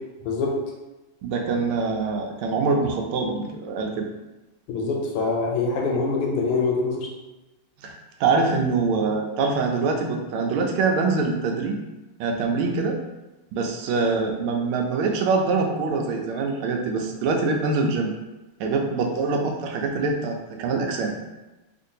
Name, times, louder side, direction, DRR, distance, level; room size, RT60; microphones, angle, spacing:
voice 1, 0.2-0.5 4.7-7.1, left 4 dB, 85° left, -1 dB, 1.6 m, -24 dB
voice 2, 1.2-4.1 7.8-11.8 12.2-13.0 13.5-18.1 18.6-21.1, right 4 dB, 85° right, 2 dB, 1.4 m, -24 dB
3.6 x 2.6 x 2.7 m, 1.1 s
omnidirectional pair, 2.3 m